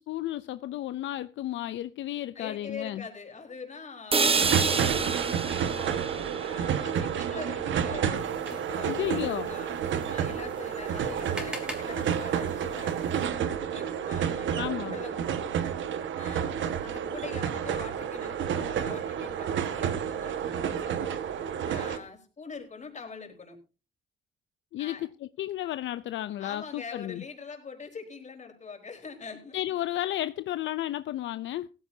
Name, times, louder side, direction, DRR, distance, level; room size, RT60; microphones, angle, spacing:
voice 1, 0.0-3.0 8.9-9.5 14.5-15.0 24.7-27.2 29.5-31.7, left 13 dB, 70° left, 0.5 m, -33 dB
voice 2, 2.3-6.0 6.4-15.7 16.2-16.5 16.8-21.2 21.6-23.6 24.8-25.1 26.4-29.6, left 5 dB, 35° left, 4.2 m, -44 dB
sound 1, 4.1-8.1, right 4 dB, 30° right, 1.3 m, -30 dB
sound 2, 4.2-22.0, right 8 dB, 70° right, 1.5 m, -30 dB
sound 3, 8.1-13.3, equal, 5° right, 3.6 m, -45 dB
16.5 x 14.5 x 2.8 m
cardioid pair, 90°, 20 cm